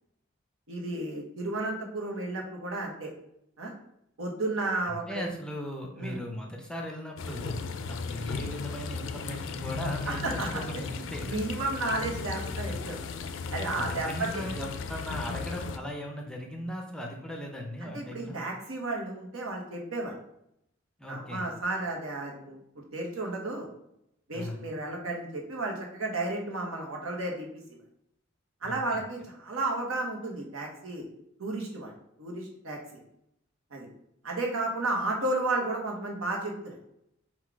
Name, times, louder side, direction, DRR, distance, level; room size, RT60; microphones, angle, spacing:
voice 1, 0.7-3.1 3.6-3.7 4.2-5.3 6.0-6.2 10.1-10.6 11.2-13.0 13.5-14.4 17.8-20.1 21.1-23.7 24.3-27.5 28.6-31.0 31.4-31.9 32.2-33.0 33.7-33.9 34.2-36.8, right 2 dB, 85° right, 0 dB, 1.0 m, -33 dB
voice 2, 4.9-7.5 7.9-11.4 12.5-12.7 13.7-18.4 21.0-21.5 24.3-24.6 28.6-29.0, equal, 5° left, 1 dB, 0.5 m, -38 dB
sound 1, 7.2-15.8, left 5 dB, 65° left, 0.3 m, -36 dB
4.0 x 2.3 x 4.5 m, 0.77 s
head